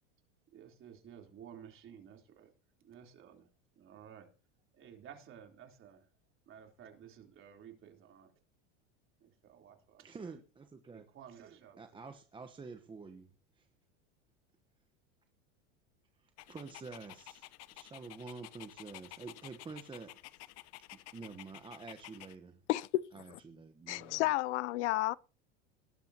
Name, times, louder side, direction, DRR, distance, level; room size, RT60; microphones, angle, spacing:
voice 1, 0.5-2.5 2.8-3.5 3.8-4.3 4.7-6.0 6.5-8.3 9.2-10.1 10.9-11.8, right 9 dB, 35° right, 3.6 m, -54 dB
voice 2, 10.0-11.1 11.8-13.7 16.2-20.2 21.1-22.6 23.1-24.2, right 4 dB, 15° right, 1.1 m, -48 dB
Dog, 16.4-22.4, left 17 dB, 45° left, 0.9 m, -52 dB
voice 3, 22.7-23.0 23.3-23.4 23.9-25.1, left 17 dB, 80° left, 0.7 m, -31 dB
20.0 x 12.0 x 2.9 m
supercardioid pair, 125°, 34 cm